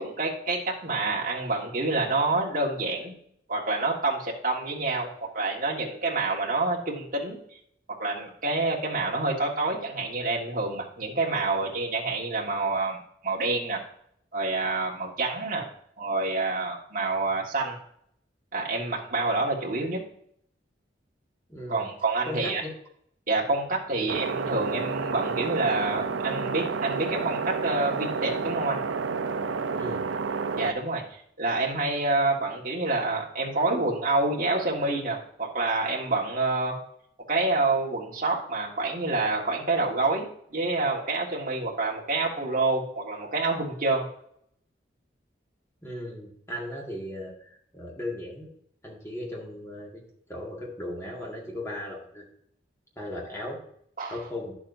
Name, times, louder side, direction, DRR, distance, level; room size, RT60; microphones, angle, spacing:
voice 1, 0.0-3.2 3.5-7.4 8.0-13.0 13.2-13.8 14.3-15.6 16.0-17.8 18.5-20.0 21.7-22.6 23.3-28.8 30.6-36.8 37.3-44.1 54.0-54.2, right 2 dB, 45° right, -3 dB, 1.7 m, -27 dB
voice 2, 21.5-21.9 22.3-22.7 23.9-24.1 29.7-30.1 45.8-48.5 48.8-50.0 50.3-52.3 53.0-53.6 54.1-54.5, left 1 dB, 15° left, -2 dB, 1.9 m, -37 dB
sound 1, 24.1-30.7, right 5 dB, 85° right, 0.5 m, -30 dB
10.5 x 7.0 x 2.7 m, 0.67 s
head